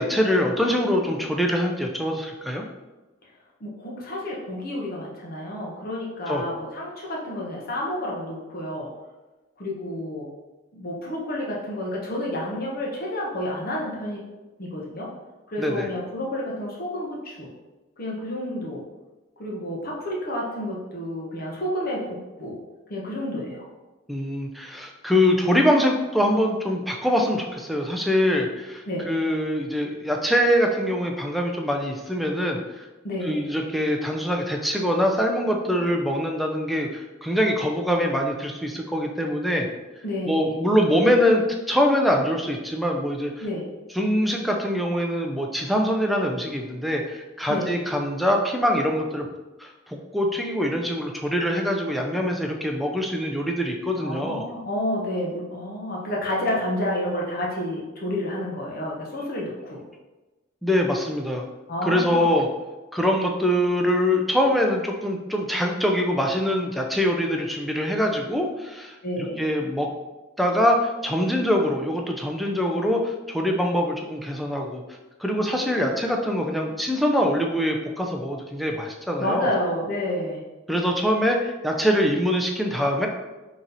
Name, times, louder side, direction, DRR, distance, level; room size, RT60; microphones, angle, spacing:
voice 1, 0.0-2.6 6.3-6.4 15.6-15.9 24.1-32.9 33.2-39.7 40.3-43.4 44.0-49.3 49.6-54.5 60.6-61.4 61.8-62.5 62.9-69.0 69.4-69.9 70.4-74.8 75.2-79.5 80.7-83.1, equal, ahead, 1 dB, 0.4 m, -23 dB
voice 2, 3.6-8.9 9.6-10.3 10.7-14.2 14.6-15.2 15.5-17.5 18.0-18.8 19.4-22.6 22.9-23.7 28.9-29.1 33.0-33.5 40.0-40.5 43.4-43.7 47.5-47.7 53.9-59.8 61.7-62.3 69.0-69.4 79.2-80.4, left 1 dB, 50° left, -3 dB, 0.9 m, -30 dB
3.9 x 3.1 x 4.0 m, 1.1 s
head